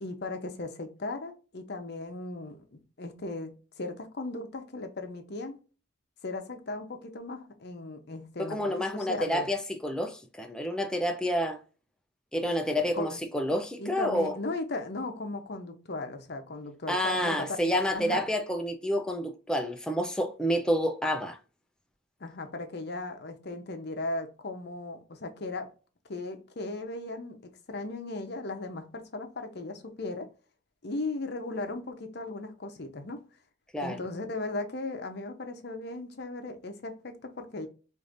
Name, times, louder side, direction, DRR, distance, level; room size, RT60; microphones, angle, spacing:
voice 1, 0.0-5.6 6.2-9.5 12.9-13.2 13.5-18.2 22.2-25.7 26.1-27.4 27.7-30.3 30.8-33.2 33.8-37.7, left 2 dB, 55° left, 0.7 m, -37 dB
voice 2, 8.4-11.6 12.3-14.4 16.9-21.4 33.7-34.0, equal, 5° left, 0.4 m, -29 dB
4.9 x 2.6 x 2.5 m
head